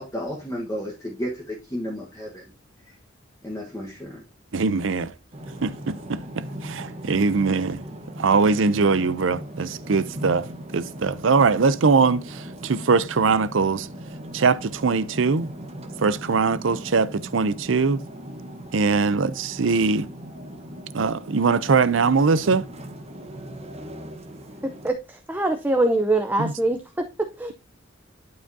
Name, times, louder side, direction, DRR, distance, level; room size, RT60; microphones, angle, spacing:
voice 1, 0.0-2.5 3.4-4.2, equal, 15° left, 1.3 m, -32 dB
voice 2, 4.5-5.1 5.6-7.8 8.2-10.5 10.7-13.9 14.3-15.5 16.0-18.0 18.7-20.1 20.9-22.7 26.4-26.5, right 4 dB, 75° right, 0.6 m, -21 dB
sound 1, 5.3-24.9, right 1 dB, 35° right, 1.2 m, -39 dB
voice 3, 24.8-26.8 27.4-27.5, right 2 dB, 10° right, 0.6 m, -23 dB
11.5 x 4.8 x 2.7 m
head